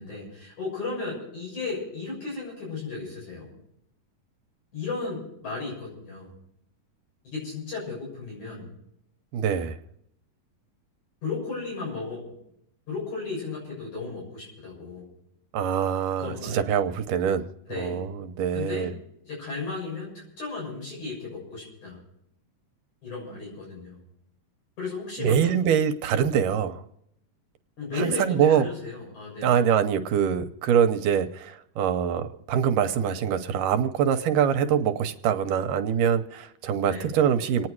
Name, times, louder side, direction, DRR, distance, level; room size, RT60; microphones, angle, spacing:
voice 1, 0.0-3.5 4.7-6.3 7.2-8.7 11.2-12.3 12.9-15.1 16.1-16.6 17.7-18.1 18.5-18.9 19.2-20.1 20.4-22.0 23.0-24.0 24.8-25.6 27.8-29.7 36.8-37.1, left 4 dB, 60° left, -4 dB, 8.4 m, -35 dB
voice 2, 9.3-9.8 15.5-18.9 25.2-26.8 28.0-28.7 29.4-37.7, right 8 dB, 80° right, 8 dB, 2.4 m, -24 dB
27.5 x 9.7 x 4.7 m, 0.75 s
omnidirectional pair, 3.9 m